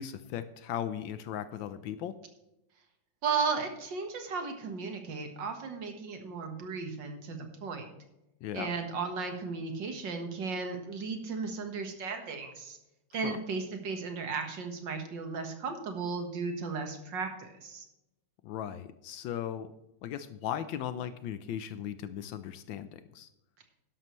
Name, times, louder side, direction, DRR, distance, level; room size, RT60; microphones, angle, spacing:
voice 1, 0.0-2.1 8.4-8.7 13.2-13.4 18.4-19.7 20.0-23.3, left 10 dB, 80° left, 12 dB, 1.4 m, -37 dB
voice 2, 3.2-7.9 8.5-12.8 13.1-17.8, right 5 dB, 70° right, 5 dB, 2.2 m, -35 dB
12.0 x 11.5 x 3.2 m, 0.91 s
omnidirectional pair, 2.1 m